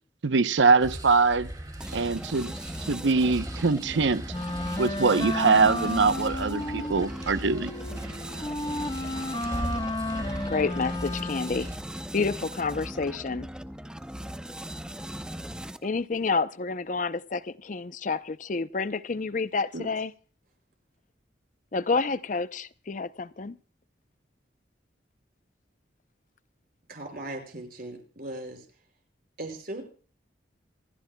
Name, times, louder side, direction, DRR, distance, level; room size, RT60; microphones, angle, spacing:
voice 1, 0.2-1.5 1.9-2.5 2.9-4.2 4.8-7.7, right 4 dB, 80° right, 0.7 m, -23 dB
sound 1, 0.8-11.8, right 1 dB, 20° right, 2.3 m, -40 dB
sound 2, 1.8-16.0, equal, 5° right, 0.6 m, -39 dB
Wind instrument woodwind instrument, 4.3-11.7, left 1 dB, 25° left, 1.2 m, -33 dB
voice 2, 10.5-11.7 12.1-13.5 15.8-20.1 21.7-23.6, left 4 dB, 45° left, 0.6 m, -29 dB
voice 3, 26.9-28.7 29.4-29.8, right 1 dB, 50° right, 5.3 m, -38 dB
27.5 x 14.0 x 2.2 m
head